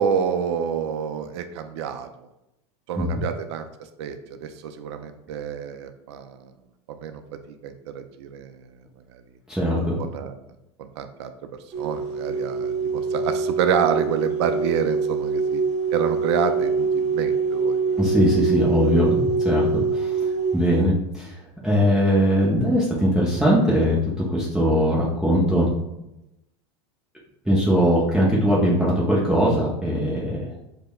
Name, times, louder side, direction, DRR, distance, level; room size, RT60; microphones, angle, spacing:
voice 1, 0.0-2.1 2.9-6.5 6.9-7.2 7.5-8.6 9.1-9.2 10.0-10.4 10.8-11.3 11.8-15.6 15.9-18.0, right 7 dB, 70° right, 8 dB, 0.4 m, -28 dB
voice 2, 9.5-10.0 18.0-20.2 20.5-21.4 21.6-25.7 27.5-30.5, equal, 5° right, -7 dB, 0.5 m, -21 dB
sound 1, 11.7-20.8, right 4 dB, 25° right, 0.9 m, -24 dB
5.0 x 2.1 x 2.2 m, 0.90 s
supercardioid pair, 140°, 15 cm